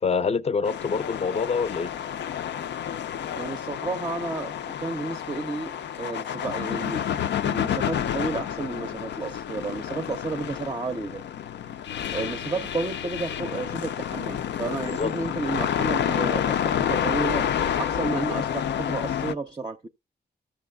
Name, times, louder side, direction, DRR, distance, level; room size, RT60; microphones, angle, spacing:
voice 1, 0.0-1.9 14.9-15.1, left 5 dB, 35° left, 0.5 m, -26 dB
sound 1, 0.6-19.3, left 9 dB, 90° left, 0.4 m, -29 dB
voice 2, 3.3-11.2 12.1-17.5 17.8-19.9, right 3 dB, 25° right, 0.5 m, -32 dB
15.0 x 7.0 x 2.2 m
wide cardioid pair, 125°, 18 cm